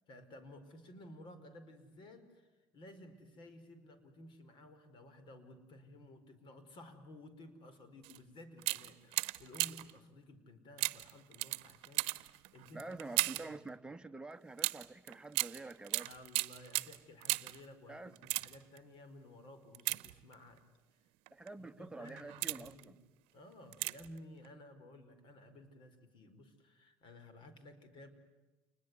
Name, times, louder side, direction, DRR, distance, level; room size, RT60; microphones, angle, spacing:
voice 1, 0.1-2.5 2.7-13.5 16.0-20.6 21.6-23.0 23.3-28.1, left 1 dB, 50° left, 4.7 m, -55 dB
sound 1, 8.0-8.2 8.6-10.0 10.8-13.6 14.6-17.7 18.1-18.8 19.7-20.6 21.3-21.5 22.0-22.8 23.7-24.2 24.4-24.5, right 23 dB, 75° right, 0.9 m, -37 dB
voice 2, 12.7-16.1 17.9-18.1 21.3-23.0, right 3 dB, 10° right, 1.2 m, -47 dB
29.0 x 21.0 x 9.7 m
supercardioid pair, 95°, 10 cm